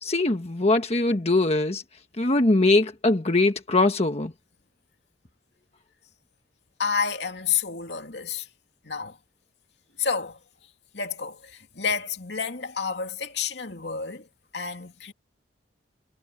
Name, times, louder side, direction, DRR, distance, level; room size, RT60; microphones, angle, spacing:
voice 1, 0.0-1.8 2.2-4.3, left 2 dB, 35° left, 1.3 m, -22 dB
voice 2, 6.8-8.5 8.8-9.2 10.0-10.4 10.9-15.1, left 6 dB, 70° left, 2.8 m, -30 dB
head